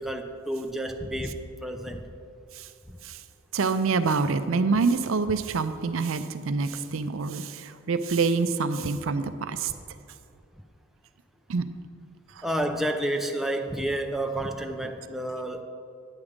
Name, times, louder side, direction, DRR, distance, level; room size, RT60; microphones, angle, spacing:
voice 1, 0.0-2.0 2.9-3.0 8.8-8.9 12.4-15.6, right 1 dB, ahead, 3 dB, 0.4 m, -30 dB
voice 2, 3.5-9.7 11.5-11.6 12.4-12.5, right 4 dB, 65° right, 11 dB, 0.5 m, -26 dB
9.7 x 7.3 x 5.1 m, 2.4 s
head